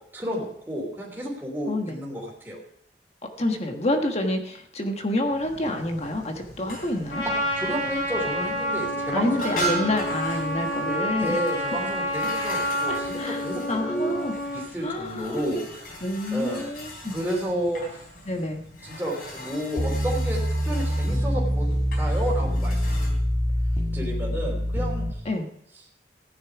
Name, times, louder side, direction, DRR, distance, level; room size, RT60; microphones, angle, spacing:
voice 1, 0.1-2.6 7.2-9.5 11.2-14.1 14.5-16.0 16.3-16.6 17.1-18.0 18.8-23.2 23.9-25.2, equal, 10° right, -4 dB, 3.2 m, -31 dB
voice 2, 1.7-2.0 3.4-7.2 9.1-11.4 12.9-14.3 14.8-15.4 16.0-17.2 18.3-18.6 25.2-25.5, left 1 dB, 35° left, 4 dB, 1.3 m, -28 dB
sound 1, 5.3-23.1, right 1 dB, 55° left, 4.0 m, -39 dB
Trumpet, 7.1-14.7, equal, 80° left, 4.2 m, -29 dB
sound 2, 19.8-25.1, equal, 20° left, 1.5 m, -25 dB
15.5 x 10.5 x 4.8 m, 0.68 s
head